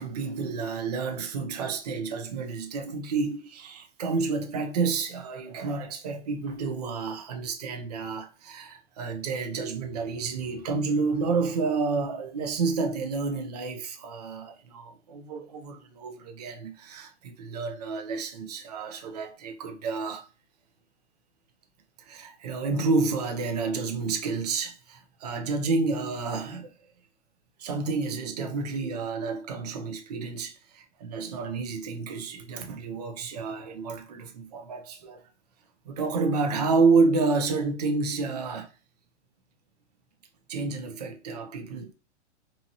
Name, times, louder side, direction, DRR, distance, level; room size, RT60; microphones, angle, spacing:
voice 1, 0.0-20.3 22.0-26.7 27.6-35.2 35.9-38.7 40.5-41.9, right 4 dB, 35° right, 0.4 m, -29 dB
2.7 x 2.6 x 2.5 m
hypercardioid pair, 165°, 35 cm